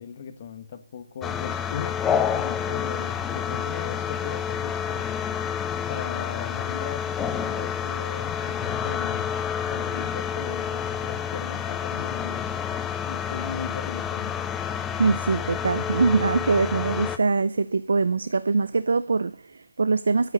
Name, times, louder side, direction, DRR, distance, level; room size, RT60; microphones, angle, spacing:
voice 1, 0.0-5.1 5.9-9.3 9.7-12.6 13.1-14.4, left 7 dB, 45° left, 1.8 m, -38 dB
sound 1, 1.2-17.2, left 8 dB, 10° left, 0.8 m, -29 dB
voice 2, 15.0-20.3, right 4 dB, 75° right, 0.6 m, -23 dB
9.9 x 9.3 x 6.6 m
hypercardioid pair, 150°, 0 cm